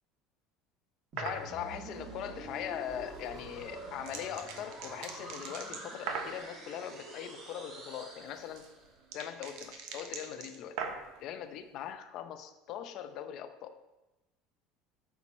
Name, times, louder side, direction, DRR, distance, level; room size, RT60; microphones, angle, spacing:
sound 1, 1.1-9.0, right 2 dB, 35° right, 1.9 m, -47 dB
voice 1, 1.2-8.7 9.1-10.8 11.2-13.8, left 10 dB, 55° left, 9 dB, 0.7 m, -41 dB
sound 2, 1.2-1.4 3.3-6.4 8.0-11.2, right 6 dB, 70° right, 1.0 m, -41 dB
8.6 x 5.8 x 4.3 m, 1.0 s
supercardioid pair, 135°, 0 cm